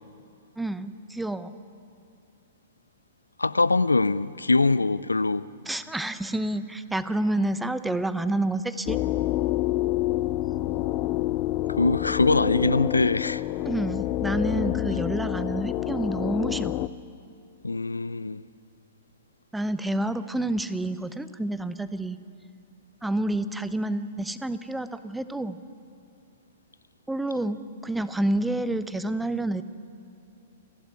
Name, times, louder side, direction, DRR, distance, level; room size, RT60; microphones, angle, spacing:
voice 1, 0.6-1.6 5.7-9.0 13.6-16.8 19.5-22.2 23.0-25.6 27.1-27.6 27.8-29.6, right 1 dB, 5° right, 0.8 m, -28 dB
voice 2, 3.4-5.5 11.7-13.4 17.6-18.4, left 3 dB, 80° left, 0.4 m, -23 dB
sound 1, 8.9-16.9, left 15 dB, 35° left, 0.6 m, -27 dB
29.0 x 11.5 x 9.8 m
figure-of-eight pair, 110°, 0 cm